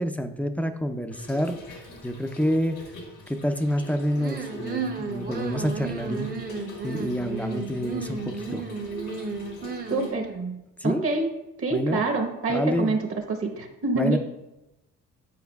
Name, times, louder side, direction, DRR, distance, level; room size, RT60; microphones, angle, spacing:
voice 1, 0.0-2.8 3.3-6.3 6.8-8.7 10.8-11.1 11.7-12.1 12.5-13.0 14.0-14.2, equal, 5° left, 7 dB, 0.4 m, -28 dB
Trickle dribble / Fill (with liquid), 1.1-10.1, equal, 80° left, 1.5 m, -44 dB
sound 1, 4.2-10.6, right 4 dB, 30° right, 0.7 m, -33 dB
voice 2, 9.9-10.3 10.8-11.3 11.6-13.0 13.3-14.2, right 3 dB, 50° right, 4 dB, 1.1 m, -26 dB
9.4 x 4.5 x 2.3 m, 0.97 s
cardioid pair, 90°, 30 cm